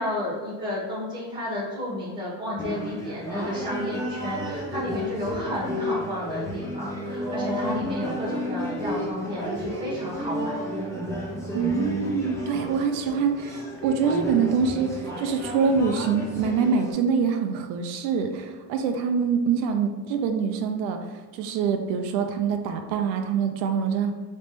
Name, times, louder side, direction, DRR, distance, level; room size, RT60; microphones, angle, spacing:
voice 1, 0.0-10.6, left 1 dB, 10° right, -7 dB, 1.4 m, -32 dB
sound 1, 2.6-16.9, equal, 5° left, 0.6 m, -32 dB
voice 2, 11.5-21.0 21.3-24.1, right 6 dB, 70° right, 6 dB, 0.7 m, -25 dB
3.4 x 3.2 x 4.1 m, 1.4 s
cardioid pair, 150°, 39 cm